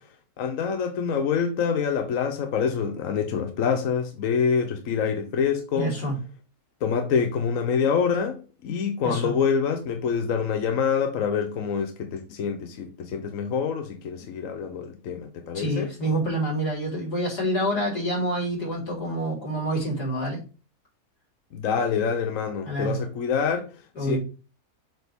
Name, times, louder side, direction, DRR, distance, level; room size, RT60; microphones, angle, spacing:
voice 1, 0.4-5.9 6.8-15.9 21.5-23.7 24.0-24.2, left 6 dB, 60° left, 1.1 m, -26 dB
voice 2, 5.7-6.2 9.0-9.4 14.2-14.4 15.5-20.4 22.6-23.0 24.0-24.2, right 1 dB, 80° left, 4.4 m, -27 dB
7.7 x 4.7 x 3.5 m
omnidirectional pair, 1.7 m